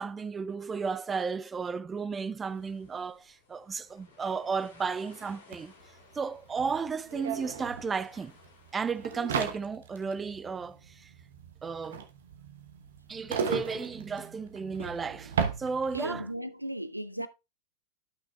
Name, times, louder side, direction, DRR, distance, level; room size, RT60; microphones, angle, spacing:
voice 1, 0.0-5.7 6.1-8.3 8.7-11.1 11.6-12.0 13.1-15.3 15.6-16.3, right 5 dB, 15° right, 0.5 m, -33 dB
sound 1, 2.4-9.3, left 4 dB, 65° left, 2.4 m, -58 dB
sound 2, 5.5-5.6 5.8-16.3, right 6 dB, 60° right, 1.2 m, -36 dB
voice 2, 15.9-17.3, equal, 90° right, 0.6 m, -35 dB
12.0 x 6.1 x 2.4 m
figure-of-eight pair, 90°, 0 cm